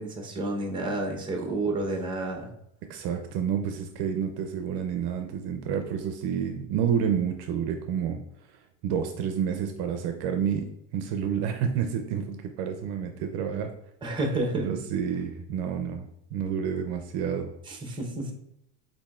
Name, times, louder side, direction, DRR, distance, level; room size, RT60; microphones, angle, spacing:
voice 1, 0.0-2.5 14.0-14.8 17.7-18.3, right 2 dB, 10° right, 2 dB, 0.7 m, -30 dB
voice 2, 2.9-8.2 8.8-13.7 14.5-17.5 17.9-18.0, right 8 dB, 55° right, 6 dB, 0.5 m, -29 dB
7.1 x 2.8 x 2.3 m, 0.79 s
supercardioid pair, 130°, 49 cm